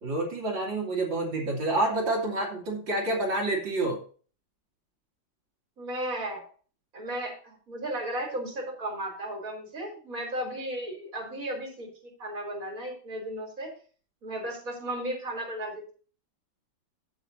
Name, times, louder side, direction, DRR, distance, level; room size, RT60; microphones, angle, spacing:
voice 1, 0.0-4.0, right 2 dB, 80° right, -1 dB, 3.4 m, -28 dB
voice 2, 5.8-6.5 6.9-13.7 14.2-15.9, right 1 dB, 45° right, 1 dB, 3.9 m, -35 dB
15.5 x 7.0 x 2.7 m, 0.39 s
omnidirectional pair, 2.0 m